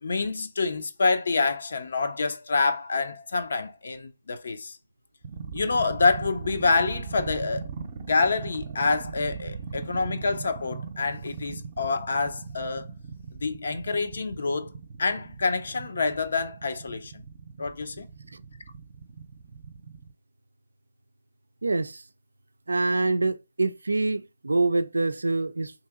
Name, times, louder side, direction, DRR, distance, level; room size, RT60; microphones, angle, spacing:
voice 1, 0.0-4.7 5.5-7.7 8.0-12.8 13.4-14.7 15.0-17.2 17.6-18.1, left 4 dB, 65° left, 0.6 m, -27 dB
sound 1, 5.2-20.1, right 6 dB, 40° right, 0.6 m, -38 dB
voice 2, 21.6-22.0 22.7-25.7, right 3 dB, 85° right, 0.4 m, -25 dB
3.0 x 2.8 x 3.6 m
figure-of-eight pair, 145°, 0 cm